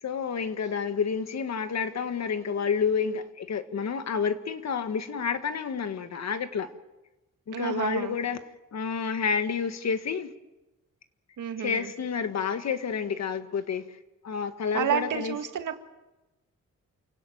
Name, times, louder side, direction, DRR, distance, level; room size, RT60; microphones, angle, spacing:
voice 1, 0.0-6.7 7.5-8.4 8.7-10.3 11.6-14.0 14.2-15.3, left 6 dB, 60° left, 1.7 m, -29 dB
voice 2, 7.5-8.2 11.4-11.9 14.7-15.8, right 9 dB, 85° right, 2.0 m, -30 dB
28.5 x 17.5 x 9.3 m
wide cardioid pair, 140°, 30 cm